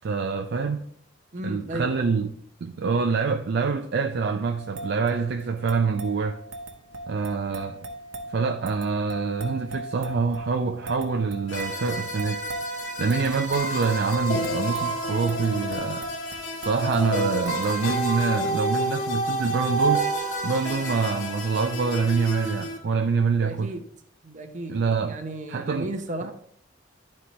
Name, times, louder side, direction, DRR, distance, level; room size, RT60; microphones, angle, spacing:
voice 1, 0.0-0.9 1.4-2.3 2.6-6.4 7.1-7.8 8.3-20.1 20.4-23.7 24.7-25.2 25.5-25.9 26.2-26.3, right 5 dB, 55° right, 0.4 m, -26 dB
voice 2, 1.3-2.2 23.4-23.8 24.2-26.3, right 1 dB, 40° right, 0.8 m, -34 dB
sound 1, 4.6-17.9, right 1 dB, 85° right, 0.9 m, -38 dB
sound 2, 11.5-22.8, right 1 dB, 70° left, 1.2 m, -29 dB
11.0 x 4.3 x 3.1 m
head